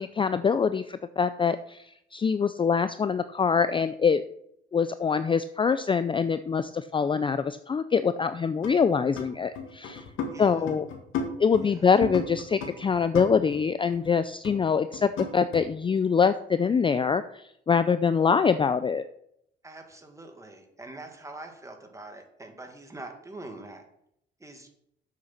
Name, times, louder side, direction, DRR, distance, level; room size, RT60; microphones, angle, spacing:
voice 1, 0.0-4.2 4.7-10.0 10.4-10.9 11.4-19.0, left 6 dB, 25° left, 12 dB, 0.4 m, -24 dB
sound 1, 8.6-9.3 9.5-13.6 13.8-14.1 14.4-14.6 14.9-15.6, left 5 dB, 80° left, 1.9 m, -34 dB
voice 2, 10.3-10.7 11.6-12.0 19.6-23.8 24.4-24.7, right 2 dB, 15° right, 4 dB, 1.9 m, -44 dB
7.8 x 6.7 x 5.8 m, 0.74 s
cardioid pair, 90°, 20 cm